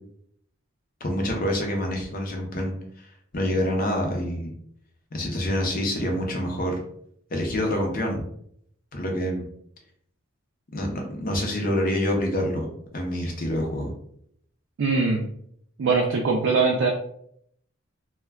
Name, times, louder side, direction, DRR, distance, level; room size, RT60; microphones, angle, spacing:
voice 1, 1.0-3.1 3.3-4.5 5.1-6.8 7.3-8.2 8.9-9.5 10.7-13.9, left 1 dB, 45° left, 1 dB, 0.6 m, -27 dB
voice 2, 14.8-15.2 15.8-16.9, right 4 dB, 65° right, 0 dB, 0.4 m, -21 dB
2.2 x 2.1 x 3.3 m, 0.68 s
head